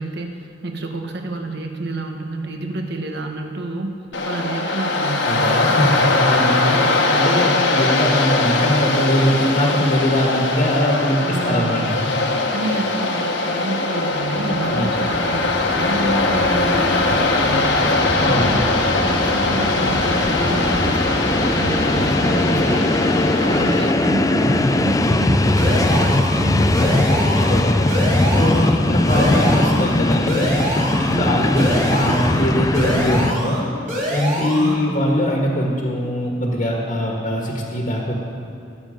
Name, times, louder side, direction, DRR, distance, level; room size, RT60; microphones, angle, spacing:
voice 1, 0.0-4.0 4.2-5.6 6.8-7.3 11.2-12.0 12.5-18.6 19.0-22.9 23.4-27.2 31.1-31.5 34.5-35.0, right 2 dB, 60° right, 3 dB, 1.2 m, -28 dB
Waves surf, 4.1-23.9, left 2 dB, 70° left, 1.3 m, -21 dB
voice 2, 5.2-12.3 14.7-14.9 18.2-18.5 27.3-27.9 28.3-30.7 31.0-33.7 34.1-38.2, left 1 dB, 45° left, -1 dB, 1.5 m, -21 dB
Train, 14.4-33.3, left 2 dB, 20° left, 0.4 m, -20 dB
sound 1, 25.6-26.4 26.7-27.6 27.9-28.7 29.1-29.9 30.3-31.1 31.6-32.4 32.7-33.6 33.9-34.7, right 1 dB, 40° right, 3.0 m, -25 dB
19.5 x 7.7 x 5.1 m, 2.5 s
head